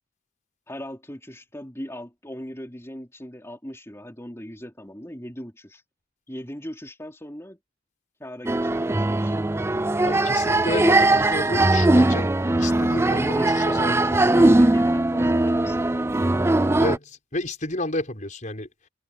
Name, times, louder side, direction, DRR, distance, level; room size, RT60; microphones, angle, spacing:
voice 1, 0.7-5.8 6.3-7.6 8.2-9.4 13.0-16.6, equal, 15° left, 3.8 m, -38 dB
sound 1, 8.5-17.0, right 2 dB, 10° right, 0.4 m, -20 dB
voice 2, 10.1-13.9 14.3-14.5 16.8-18.7, left 1 dB, 35° left, 5.6 m, -31 dB
head